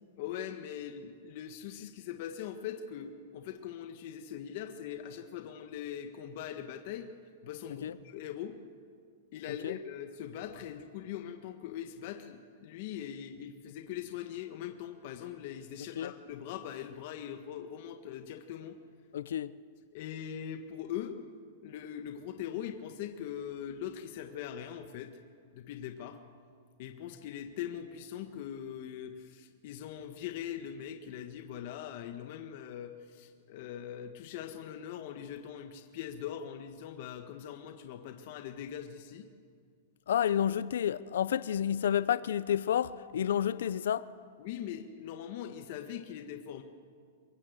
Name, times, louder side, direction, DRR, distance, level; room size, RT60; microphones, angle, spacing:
voice 1, 0.2-7.1 7.4-8.6 9.3-18.8 19.9-21.2 21.6-25.1 25.5-26.2 26.8-39.3 44.4-46.6, left 9 dB, 50° left, 1.5 m, -41 dB
voice 2, 19.1-19.5 40.1-44.1, left 9 dB, 80° left, 0.6 m, -30 dB
23.5 x 21.0 x 8.0 m
supercardioid pair, 155°, 0 cm